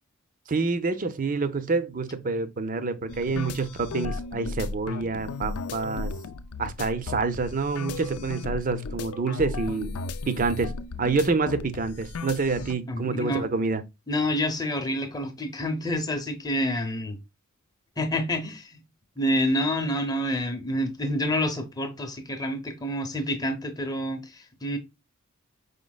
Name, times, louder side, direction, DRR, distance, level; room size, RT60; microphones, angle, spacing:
voice 1, 0.5-6.1 6.6-10.0 10.3-10.7 11.0-13.8, right 4 dB, 40° right, 0.6 m, -27 dB
sound 1, 3.1-12.7, left 4 dB, 90° left, 0.5 m, -35 dB
voice 2, 12.9-13.4 14.1-17.2 18.0-18.8 19.2-24.8, left 1 dB, 15° left, 0.8 m, -28 dB
5.2 x 4.1 x 2.3 m
head